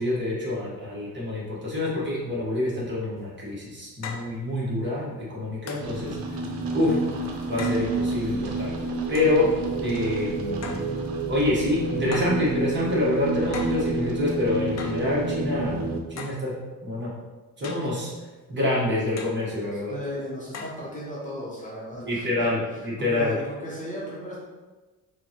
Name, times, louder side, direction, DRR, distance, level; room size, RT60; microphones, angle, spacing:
voice 1, 0.0-6.2 6.7-7.0 7.5-8.7 9.1-9.5 9.8-10.8 11.3-16.5 16.8-17.1 17.6-18.1 18.5-19.9 22.0-23.3, left 2 dB, 35° right, -6 dB, 1.3 m, -26 dB
sound 1, 3.2-3.3 4.0-4.3 5.7-6.0 7.6-7.9 9.1-9.4 10.6-10.9 12.1-12.4 13.5-13.8 14.8-15.0 16.2-16.4 17.6-17.9 19.2-19.4 20.5-20.8, left 4 dB, 50° left, 0.5 m, -37 dB
sound 2, 5.8-16.0, right 3 dB, 90° right, 0.7 m, -29 dB
voice 2, 19.7-24.4, equal, 25° left, -6 dB, 0.8 m, -36 dB
5.2 x 2.2 x 2.9 m, 1.2 s
cardioid pair, 140°, 34 cm